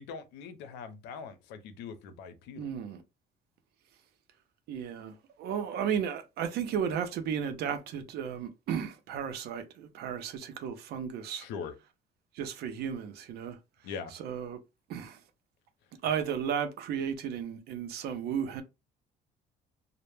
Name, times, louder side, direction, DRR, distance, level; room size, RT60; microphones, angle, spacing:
voice 1, 0.0-2.7 11.3-11.7 13.8-14.1, left 6 dB, 85° left, 0.5 m, -42 dB
voice 2, 2.6-3.0 4.7-11.5 12.3-13.6 14.1-14.6 14.9-15.2 16.0-18.6, right 8 dB, 70° right, 0.5 m, -34 dB
2.0 x 2.0 x 3.1 m
cardioid pair, 110°, 17 cm